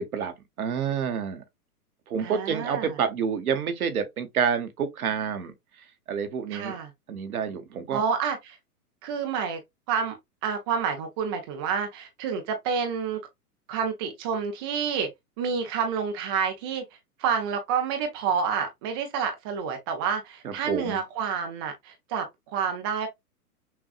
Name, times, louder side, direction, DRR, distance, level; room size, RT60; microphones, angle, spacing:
voice 1, 0.0-1.4 2.1-5.5 6.1-6.8 7.1-8.0 20.4-21.0, right 7 dB, 65° right, 1.1 m, -28 dB
voice 2, 2.2-3.0 6.5-6.9 7.9-8.6 9.0-9.6 9.9-10.2 10.4-13.2 13.7-15.1 15.4-16.8 17.2-23.1, right 6 dB, 20° right, 0.4 m, -29 dB
6.1 x 2.3 x 2.4 m
figure-of-eight pair, 115°, 46 cm